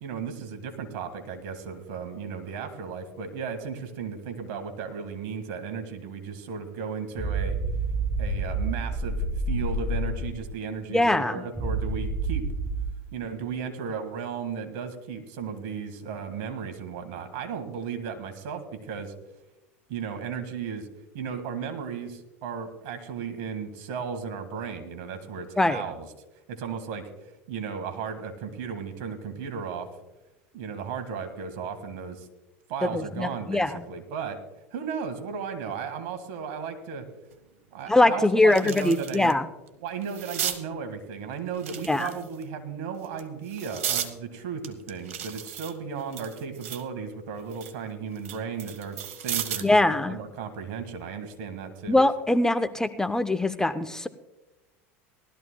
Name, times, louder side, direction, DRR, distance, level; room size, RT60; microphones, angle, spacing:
voice 1, 0.0-7.6 8.2-12.5 13.1-19.1 19.9-20.9 21.1-26.1 26.5-27.1 27.5-29.9 30.5-32.3 32.7-34.4 34.7-37.1 37.7-39.3 39.8-52.0, right 6 dB, 65° right, 8 dB, 1.7 m, -35 dB
sound 1, 7.2-10.4 11.5-12.8, right 2 dB, 10° right, 3.6 m, -28 dB
voice 2, 10.9-11.4 25.6-25.8 32.9-33.8 37.9-39.4 41.9-42.1 49.6-50.2 51.9-54.1, left 2 dB, 10° left, 11 dB, 0.5 m, -22 dB
sound 2, 37.3-37.4 37.9-39.3 39.7-40.6 41.5-42.4 43.0-44.1 44.6-46.9 47.3-49.8 51.1-51.3, right 9 dB, 85° right, 1.1 m, -35 dB
19.0 x 13.0 x 2.2 m, 1.1 s
hypercardioid pair, 95°, 8 cm